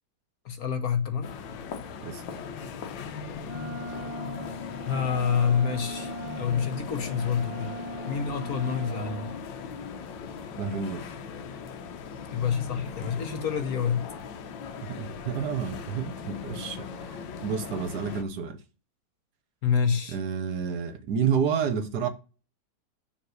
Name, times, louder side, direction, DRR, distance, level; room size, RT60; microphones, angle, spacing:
voice 1, 0.4-1.3 4.8-7.7 8.1-9.3 12.3-14.1 19.6-20.2, left 7 dB, 55° left, 1.2 m, -27 dB
sound 1, 1.2-18.2, left 6 dB, 75° left, 1.5 m, -39 dB
Wind instrument woodwind instrument, 3.4-9.5, left 1 dB, 10° right, 0.6 m, -39 dB
voice 2, 10.6-11.0 14.8-18.6 20.1-22.1, right 7 dB, 65° right, 1.3 m, -30 dB
7.1 x 3.5 x 6.4 m
omnidirectional pair, 2.1 m